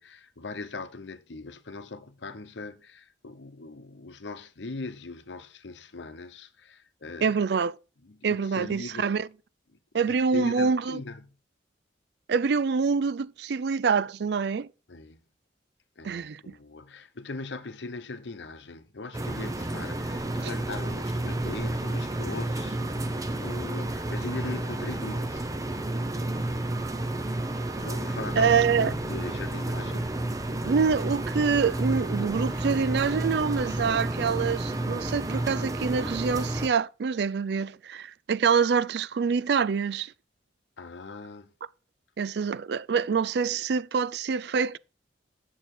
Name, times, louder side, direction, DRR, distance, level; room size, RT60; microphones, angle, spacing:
voice 1, 0.0-7.4 8.0-9.1 9.7-9.8 10.0-11.4 14.9-15.2 16.0-22.8 23.4-25.5 27.8-30.2 40.8-41.5, left 3 dB, 80° left, 0.9 m, -40 dB
voice 2, 7.2-7.7 8.2-9.3 9.9-11.0 12.3-14.7 16.0-16.5 20.4-20.5 28.4-28.9 30.6-40.1 42.2-44.8, right 5 dB, 65° right, 0.4 m, -26 dB
sound 1, 19.1-36.7, right 1 dB, 20° right, 0.7 m, -31 dB
9.0 x 7.3 x 4.3 m
head